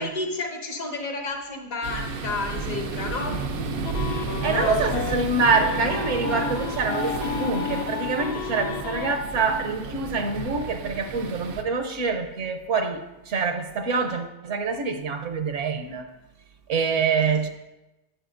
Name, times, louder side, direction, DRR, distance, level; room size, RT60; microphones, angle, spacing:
voice 1, 0.0-3.3 4.4-4.8, left 3 dB, 75° left, 1.6 m, -30 dB
sound 1, 1.8-11.6, right 4 dB, 85° right, 1.2 m, -32 dB
sound 2, 3.8-5.2 5.6-9.2, left 7 dB, 60° left, 0.7 m, -32 dB
voice 2, 4.0-16.1 16.7-17.5, right 4 dB, 65° right, 1.0 m, -26 dB
10.5 x 8.8 x 2.5 m
omnidirectional pair, 1.4 m